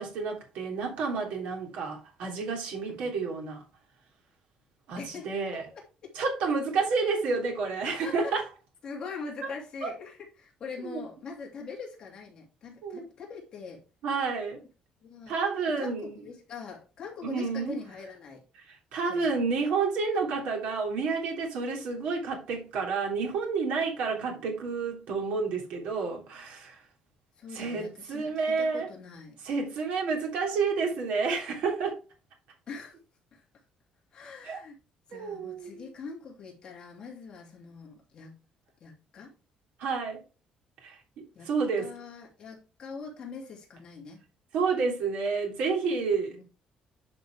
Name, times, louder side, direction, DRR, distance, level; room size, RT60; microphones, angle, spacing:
voice 1, 0.0-3.6 4.9-5.6 6.1-8.4 9.8-9.9 10.8-11.0 12.8-13.0 14.0-14.6 15.3-16.2 17.2-17.8 18.6-26.8 27.5-28.9 29.4-32.0 34.4-34.6 35.1-35.9 39.8-40.2 40.8-41.9 44.5-46.4, right 4 dB, 70° right, 3.3 m, -30 dB
voice 2, 5.0-6.1 7.8-8.3 8.8-13.8 15.0-15.4 15.8-18.4 19.1-19.4 24.2-24.4 27.4-29.4 32.7-33.0 33.3-33.4 34.1-34.7 35.1-38.3 38.8-39.3 41.3-41.5 41.8-44.2 46.3-46.4, left 4 dB, 35° left, 2.9 m, -43 dB
10.0 x 5.4 x 3.5 m
cardioid pair, 180°, 2 cm